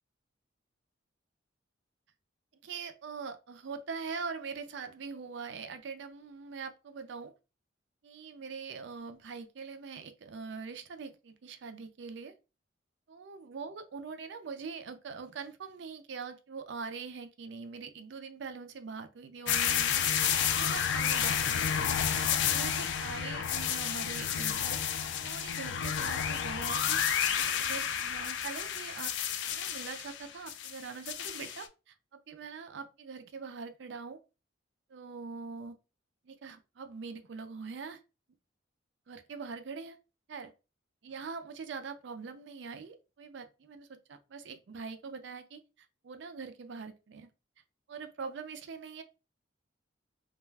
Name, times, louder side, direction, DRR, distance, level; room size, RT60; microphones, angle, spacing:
voice 1, 2.6-7.3 8.0-12.3 13.1-20.0 20.5-21.4 22.1-24.8 25.2-27.0 27.6-29.1 29.5-34.2 34.9-35.8 36.2-38.0 39.1-40.0 40.3-40.5 41.0-45.6 46.0-47.3 47.9-49.0, right 5 dB, 65° right, 0.4 m, -43 dB
sound 1, 19.5-31.6, left 8 dB, 65° left, 0.3 m, -31 dB
2.4 x 2.2 x 3.2 m
head